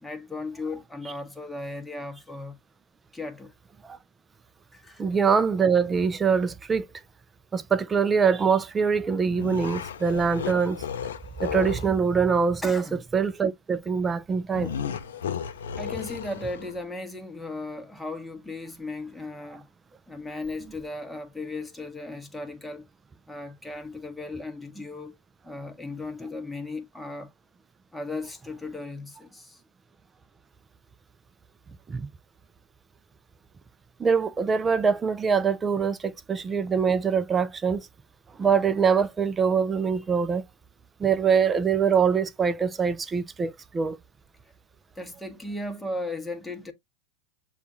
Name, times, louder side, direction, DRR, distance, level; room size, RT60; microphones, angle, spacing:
voice 1, 0.0-2.6 3.1-3.5 4.7-5.0 12.6-13.0 15.8-19.7 20.1-22.9 23.3-25.2 25.4-27.3 27.9-29.6 45.0-46.7, left 2 dB, 5° left, 1.0 m, -36 dB
voice 2, 5.0-6.9 7.5-10.8 11.4-12.8 13.1-14.7 31.9-32.1 34.0-37.9 38.4-40.4 41.0-44.0, right 6 dB, 20° right, 0.5 m, -24 dB
sound 1, 9.3-11.9 14.5-16.8, left 8 dB, 85° left, 0.5 m, -34 dB
6.9 x 2.4 x 2.7 m
hypercardioid pair, 100°, 0 cm